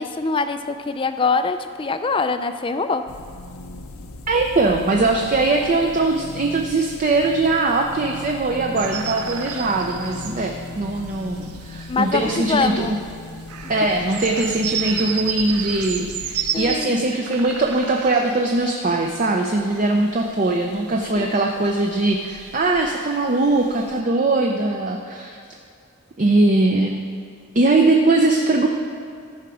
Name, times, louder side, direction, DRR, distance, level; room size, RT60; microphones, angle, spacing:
voice 1, 0.0-3.0 11.9-12.9 16.5-17.0 21.2-21.4, left 4 dB, 20° left, 9 dB, 0.3 m, -23 dB
sound 1, 3.1-16.8, left 2 dB, 75° left, 0.7 m, -38 dB
voice 2, 4.3-13.0 13.7-25.4 26.2-27.0 27.5-28.7, right 2 dB, 35° right, 2 dB, 0.5 m, -21 dB
sound 2, 8.7-24.0, right 8 dB, 85° right, 0.7 m, -33 dB
14.0 x 5.7 x 4.9 m, 2.3 s
head